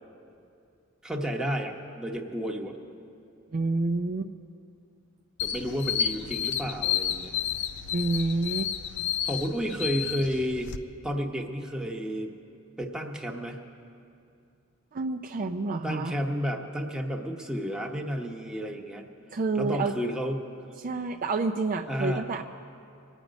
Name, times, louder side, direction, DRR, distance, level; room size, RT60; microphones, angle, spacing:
voice 1, 1.0-2.8 5.4-7.4 9.2-10.7 11.0-12.3 12.8-13.6 15.8-19.1 19.6-20.5 21.9-22.3, equal, 5° right, 1 dB, 1.0 m, -31 dB
voice 2, 3.5-4.3 7.9-8.7 14.9-16.2 19.3-20.0 20.8-22.4, right 3 dB, 40° right, 4 dB, 0.5 m, -28 dB
sound 1, 5.4-10.8, left 9 dB, 55° left, 0.5 m, -31 dB
24.0 x 9.1 x 5.2 m, 2.5 s
head